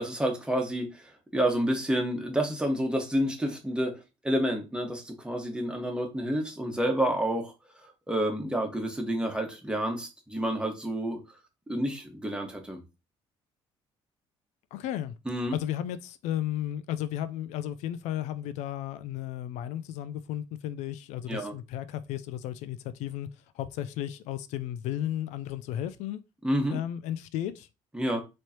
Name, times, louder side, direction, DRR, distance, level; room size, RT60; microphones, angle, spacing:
voice 1, 0.0-3.9 4.2-11.2 11.7-12.8 15.2-15.6 21.3-21.5 26.4-26.8 27.9-28.2, right 1 dB, 10° right, 1.5 m, -29 dB
voice 2, 14.7-15.1 15.5-23.3 23.5-26.2 26.7-27.7, left 11 dB, 80° left, 0.4 m, -34 dB
4.5 x 3.1 x 2.9 m
supercardioid pair, 75°, 12 cm